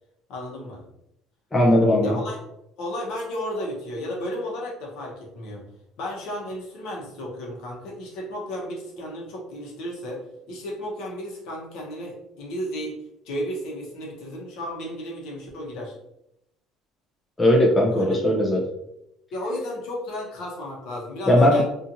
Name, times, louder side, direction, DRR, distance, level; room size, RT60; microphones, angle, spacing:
voice 1, 0.3-0.8 2.0-2.4 2.8-5.6 6.0-12.9 13.2-16.0 17.8-18.2 19.3-21.6, equal, 70° left, -2 dB, 0.9 m, -33 dB
voice 2, 1.5-2.2 17.4-18.6 21.3-21.6, left 1 dB, 15° left, -2 dB, 0.5 m, -18 dB
2.8 x 2.4 x 2.6 m, 0.81 s
cardioid pair, 145°, 0 cm